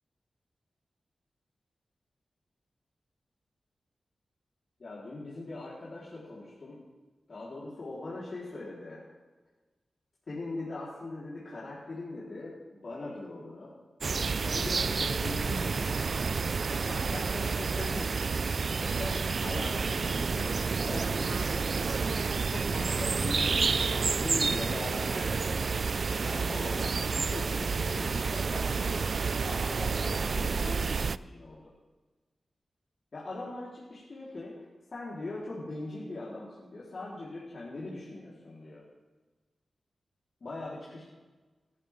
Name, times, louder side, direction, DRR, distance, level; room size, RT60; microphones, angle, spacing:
voice 1, 4.8-6.8 7.3-9.0 10.3-13.7 14.4-18.3 18.9-20.5 20.8-21.9 22.5-31.6 33.1-34.6 34.9-38.8 40.4-41.0, left 2 dB, 60° left, -8 dB, 4.3 m, -41 dB
sound 1, 14.0-31.2, right 4 dB, 65° right, 0.3 m, -29 dB
16.0 x 14.0 x 3.8 m, 1.3 s
cardioid pair, 55°, 0 cm